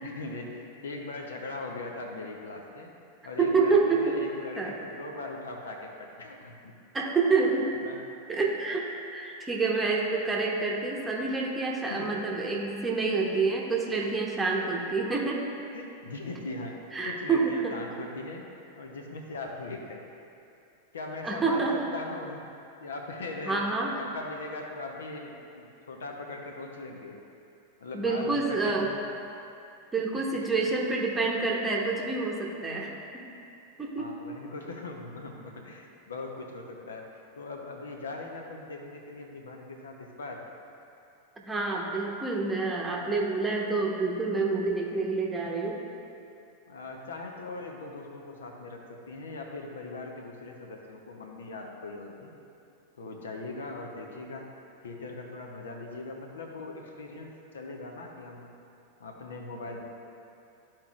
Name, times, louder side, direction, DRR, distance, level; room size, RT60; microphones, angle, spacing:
voice 1, 0.0-2.9 3.2-6.7 7.8-8.0 11.9-12.2 15.7-20.0 20.9-22.5 22.8-23.6 23.9-27.2 27.8-29.0 30.4-30.5 34.0-40.4 46.7-52.3 53.0-58.5 59.0-59.8, left 3 dB, 65° left, 2 dB, 0.9 m, -40 dB
voice 2, 3.4-4.2 4.6-4.7 6.9-7.7 8.3-15.5 16.9-17.8 21.2-21.9 23.5-23.9 27.9-28.9 29.9-33.2 33.8-34.2 41.5-45.8, right 4 dB, 15° right, -2 dB, 1.0 m, -28 dB
13.0 x 4.5 x 2.5 m, 2.7 s
figure-of-eight pair, 90°, 0 cm